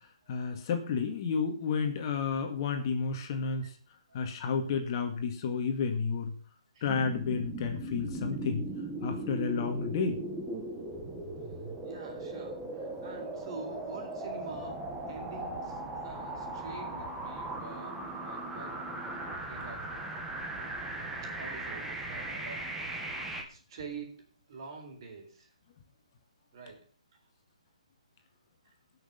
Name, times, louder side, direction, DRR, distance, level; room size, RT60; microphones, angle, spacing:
voice 1, 0.3-3.7 4.1-6.3 6.8-8.6 9.0-10.2, left 5 dB, 35° left, 5 dB, 2.0 m, -31 dB
sound 1, 6.9-23.4, right 2 dB, 5° right, 1.6 m, -38 dB
voice 2, 11.8-19.9 21.2-22.7 23.3-25.5 26.5-26.8 28.6-28.7, right 4 dB, 45° right, 2 dB, 4.0 m, -47 dB
17.5 x 6.5 x 5.2 m, 0.39 s
hypercardioid pair, 160°, 4 cm